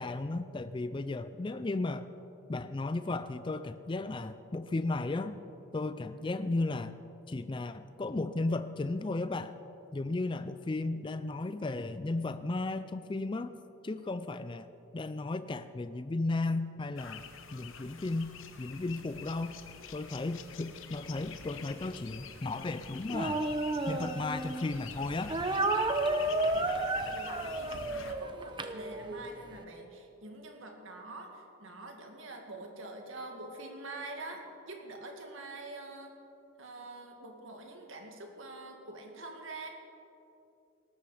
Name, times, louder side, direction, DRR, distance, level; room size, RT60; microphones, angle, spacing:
voice 1, 0.0-2.1 2.5-5.4 5.7-6.9 7.3-9.5 9.9-13.5 13.8-14.7 14.9-17.2 17.5-19.5 19.9-23.4 23.9-25.3, left 2 dB, 20° left, 11 dB, 0.4 m, -34 dB
sound 1, 17.0-28.1, left 6 dB, 65° left, 1.0 m, -46 dB
Speech, 23.1-24.7 25.3-29.3, right 2 dB, 20° right, 0.7 m, -32 dB
voice 2, 27.0-36.1 36.6-39.7, right 2 dB, 65° right, 2 dB, 2.2 m, -45 dB
19.0 x 12.5 x 5.0 m, 2.8 s
head